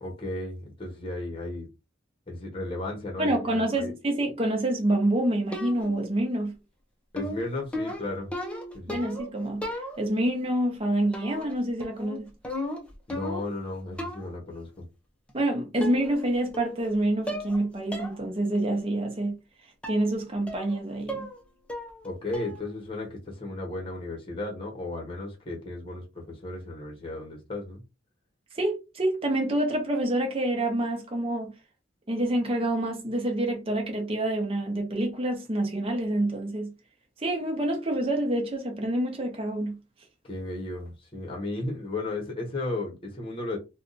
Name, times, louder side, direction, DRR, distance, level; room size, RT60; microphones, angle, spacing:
voice 1, 0.0-1.7 2.3-3.9 7.1-8.3 8.7-9.0 13.1-14.8 22.0-27.8 40.2-43.6, left 2 dB, 30° left, 0.9 m, -34 dB
voice 2, 3.2-6.5 8.9-12.3 15.3-19.4 19.9-21.3 28.5-31.5 32.1-36.7 37.2-39.8, right 1 dB, 30° right, 0.8 m, -27 dB
sound 1, 5.5-6.1 7.2-9.3 9.6-10.3 11.1-11.5 11.8-13.6 14.0-14.4 15.3-15.4 15.8-16.3 16.5-16.9 17.3-17.6 17.9-18.2 18.6-18.7 19.8-20.1 20.5-20.8 21.1-21.4 21.7-22.1 22.3-22.7, left 1 dB, 5° left, 0.5 m, -36 dB
2.6 x 2.3 x 3.8 m
head